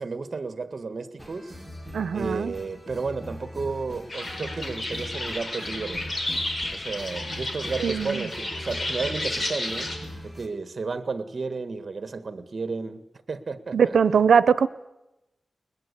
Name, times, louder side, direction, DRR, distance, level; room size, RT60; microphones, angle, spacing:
voice 1, 0.0-1.5 2.1-6.1 6.7-9.9 10.2-14.0, right 4 dB, 50° right, 11 dB, 1.7 m, -33 dB
sound 1, 1.2-10.5, equal, 10° left, 3.7 m, -40 dB
voice 2, 1.9-2.5 7.8-8.3 13.7-14.7, right 6 dB, 85° right, 16 dB, 0.9 m, -21 dB
sound 2, 4.1-10.0, left 1 dB, 45° left, 5.3 m, -32 dB
21.5 x 21.0 x 8.4 m, 0.95 s
wide cardioid pair, 85°, 0 cm